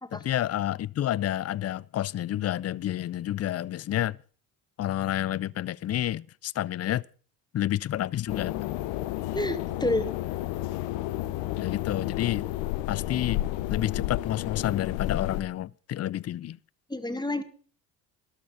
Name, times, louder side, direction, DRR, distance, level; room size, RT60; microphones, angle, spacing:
voice 1, 0.1-4.2 4.8-7.0 7.5-8.7 11.6-12.5 12.9-13.4 13.7-16.6, left 12 dB, 35° left, 0.5 m, -29 dB
sound 1, 8.3-15.4, left 15 dB, 65° left, 0.9 m, -31 dB
voice 2, 9.3-10.1 16.9-17.4, left 1 dB, 10° left, 1.8 m, -29 dB
13.0 x 12.0 x 5.2 m
hypercardioid pair, 60°, 47 cm